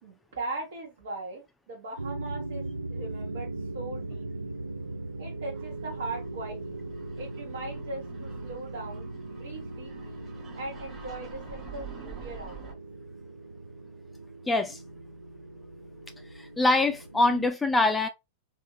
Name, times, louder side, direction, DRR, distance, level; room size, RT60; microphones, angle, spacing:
voice 1, 0.0-4.5 5.2-6.8 7.2-9.1 9.4-10.2 10.6-12.8, right 2 dB, 70° right, 1.1 m, -40 dB
sound 1, 2.0-17.5, right 2 dB, 90° right, 0.3 m, -39 dB
sound 2, 5.6-12.7, right 6 dB, 25° right, 0.9 m, -48 dB
voice 2, 14.5-14.8 16.3-18.1, left 2 dB, 10° left, 0.4 m, -24 dB
3.4 x 2.6 x 3.1 m
figure-of-eight pair, 100°, 0 cm